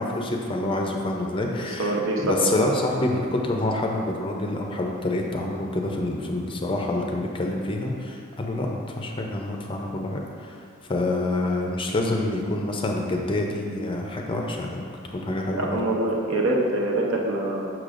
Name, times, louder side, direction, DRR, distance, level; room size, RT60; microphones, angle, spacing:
voice 1, 0.0-2.0 2.2-10.6 10.9-15.7, left 2 dB, 25° left, 1 dB, 0.5 m, -27 dB
voice 2, 1.6-2.7 15.6-17.7, right 2 dB, 65° right, -1 dB, 0.8 m, -25 dB
6.6 x 6.1 x 2.5 m, 2.2 s
head